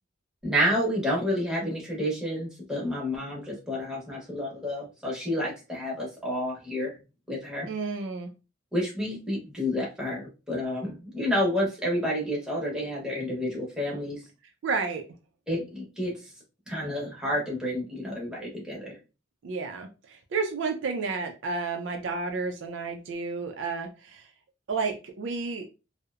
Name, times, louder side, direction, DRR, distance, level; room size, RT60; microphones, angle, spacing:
voice 1, 0.4-7.0 7.3-7.7 8.7-14.2 15.5-16.3 16.7-19.0, equal, 5° right, -5 dB, 0.8 m, -30 dB
voice 2, 7.7-8.3 14.6-15.0 19.4-24.3 24.7-25.7, right 4 dB, 60° right, 5 dB, 0.4 m, -31 dB
2.7 x 2.0 x 2.3 m, 0.30 s
head